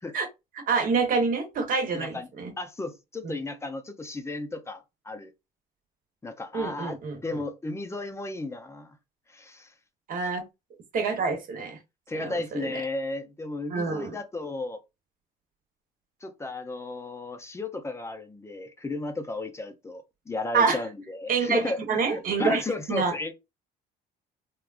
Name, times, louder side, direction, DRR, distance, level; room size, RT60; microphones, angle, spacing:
voice 1, 0.7-2.5 3.2-3.3 6.5-7.4 10.1-10.4 10.9-11.8 12.1-12.8 13.7-14.1 20.5-20.8 21.3-22.6 22.9-23.1, right 4 dB, 55° right, 1.0 m, -27 dB
voice 2, 1.9-2.3 2.6-5.3 6.2-9.0 9.3-9.7 12.1-14.8 16.2-21.8 22.1-23.3, left 2 dB, 15° left, 0.5 m, -34 dB
3.4 x 2.3 x 2.4 m
cardioid pair, 110°, 17 cm